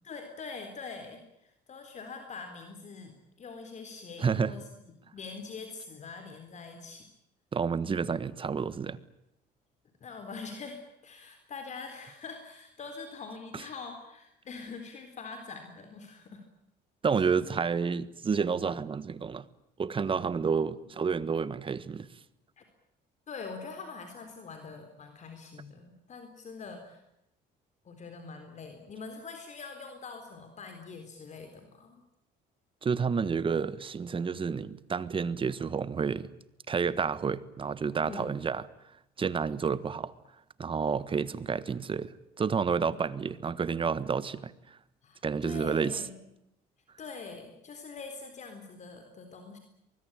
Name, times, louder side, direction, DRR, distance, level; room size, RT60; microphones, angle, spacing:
voice 1, 0.0-4.7 5.1-7.1 10.0-16.4 17.2-17.3 22.6-22.7 23.3-27.0 27.8-32.0 38.0-38.3 42.9-43.0 45.0-46.2 47.0-49.6, left 4 dB, 45° left, 6 dB, 4.0 m, -44 dB
voice 2, 4.2-4.5 7.5-9.0 13.5-13.6 17.0-19.4 19.8-22.1 32.8-36.3 36.7-38.6 39.2-40.1 40.6-44.5 45.2-46.0, right 5 dB, 30° right, 16 dB, 1.4 m, -30 dB
24.0 x 21.5 x 9.1 m, 0.84 s
cardioid pair, 110°, 17 cm